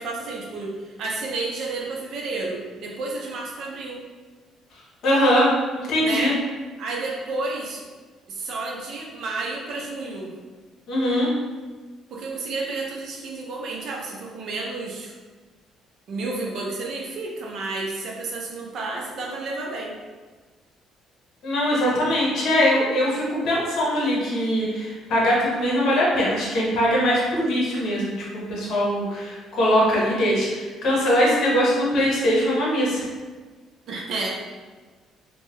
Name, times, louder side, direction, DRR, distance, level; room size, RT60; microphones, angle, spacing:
voice 1, 0.0-4.0 6.0-6.4 6.8-7.8 8.3-10.3 12.1-15.1 16.1-20.0 33.9-34.4, right 3 dB, 60° right, -1 dB, 0.6 m, -31 dB
voice 2, 5.0-5.5 5.8-6.3 10.9-11.3 21.4-33.0, equal, 65° left, -5 dB, 0.9 m, -21 dB
2.7 x 2.2 x 3.0 m, 1.4 s
cardioid pair, 120°, 0 cm